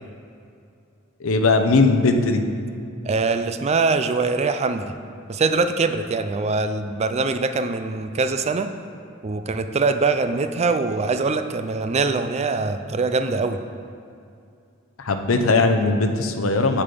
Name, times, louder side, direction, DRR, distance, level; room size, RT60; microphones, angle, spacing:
voice 1, 1.2-2.4 15.1-16.8, left 3 dB, 70° left, 6 dB, 0.7 m, -19 dB
voice 2, 3.0-4.9 5.3-8.7 9.2-13.6, right 4 dB, 30° right, 9 dB, 0.4 m, -23 dB
6.8 x 5.5 x 6.8 m, 2.5 s
head